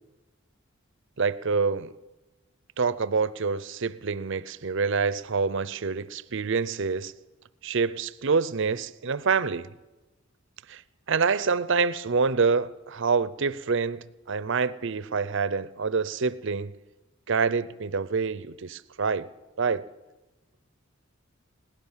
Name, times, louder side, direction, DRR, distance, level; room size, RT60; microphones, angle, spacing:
voice 1, 1.2-1.9 2.8-7.1 7.6-9.7 10.7-10.8 11.1-16.7 17.3-19.3 19.6-19.9, right 5 dB, 60° right, 0.6 m, -26 dB
21.5 x 17.5 x 7.3 m
head